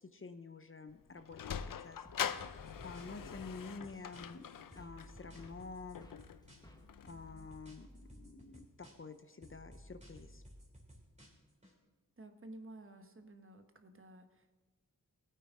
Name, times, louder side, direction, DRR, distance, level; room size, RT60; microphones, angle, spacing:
voice 1, 0.0-2.0 2.3-4.5 4.8-6.0 7.0-10.4, left 4 dB, 35° left, 9 dB, 0.7 m, -49 dB
Sliding door, 0.9-7.5, left 8 dB, 70° left, 0.6 m, -44 dB
sound 1, 1.4-8.1, equal, 10° left, 1.2 m, -62 dB
sound 2, 2.4-4.4 4.7-6.8 7.1-9.2 9.4-11.7, equal, 20° right, 3.0 m, -56 dB
voice 2, 12.2-14.5, right 1 dB, 35° right, 6 dB, 1.2 m, -53 dB
17.0 x 8.9 x 3.7 m, 1.2 s
wide cardioid pair, 70°, 34 cm